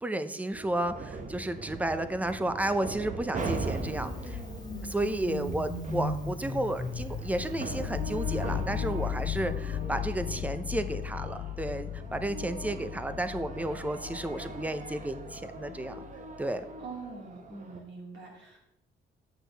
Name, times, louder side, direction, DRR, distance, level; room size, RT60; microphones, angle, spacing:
voice 1, 0.0-4.4 4.8-16.0 16.4-16.6, right 1 dB, 5° right, 11 dB, 0.5 m, -32 dB
sound 1, 0.5-17.8, right 3 dB, 40° right, 1.0 m, -41 dB
Engine starting, 3.4-9.9, left 1 dB, 20° left, 1.6 m, -38 dB
sound 2, 7.0-16.8, left 11 dB, 60° left, 0.4 m, -37 dB
voice 2, 16.8-18.6, right 4 dB, 70° right, -2 dB, 2.8 m, -43 dB
8.1 x 6.2 x 3.4 m, 0.83 s
cardioid pair, 90°, 20 cm